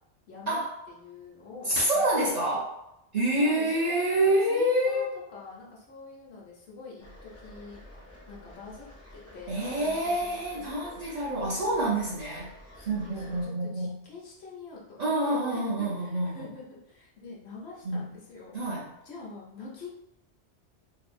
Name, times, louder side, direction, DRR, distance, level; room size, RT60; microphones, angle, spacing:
voice 1, 0.3-0.6 0.9-2.2 3.3-7.8 8.3-8.9 9.1-10.8 11.3-11.6 12.7-18.6 19.0-19.9, left 4 dB, 65° left, -3 dB, 0.9 m, -45 dB
voice 2, 1.7-2.8 3.1-5.1 9.5-12.5 12.9-14.0 15.0-16.5 17.8-18.1 18.5-18.9, right 1 dB, 50° right, -6 dB, 0.5 m, -27 dB
sound 1, 7.0-13.5, left 1 dB, 25° left, 0.4 m, -50 dB
2.6 x 2.2 x 2.5 m, 0.85 s
omnidirectional pair, 1.2 m